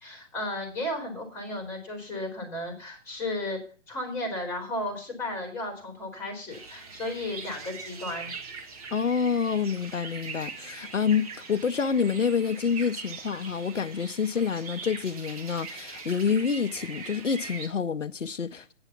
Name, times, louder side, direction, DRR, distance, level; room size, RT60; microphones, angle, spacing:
voice 1, 0.0-3.6 3.9-8.3, left 1 dB, 5° left, 2.8 m, -34 dB
sound 1, 6.5-17.7, right 5 dB, 30° right, 1.4 m, -42 dB
voice 2, 8.9-18.7, left 6 dB, 75° left, 0.7 m, -27 dB
8.8 x 6.8 x 6.8 m
figure-of-eight pair, 135°, 37 cm